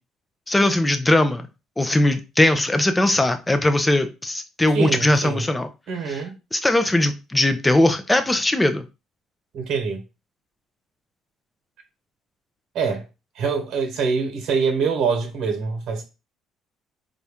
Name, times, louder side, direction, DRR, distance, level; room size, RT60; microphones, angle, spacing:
voice 1, 0.5-1.5 1.8-5.7 6.1-6.2 6.5-8.8, left 1 dB, 10° left, 0.5 m, -20 dB
voice 2, 4.7-5.4 5.9-6.3 9.5-10.0 12.7-13.0 13.3-16.0, right 5 dB, 65° right, 1.2 m, -24 dB
4.1 x 2.4 x 3.4 m
cardioid pair, 105°, 0 cm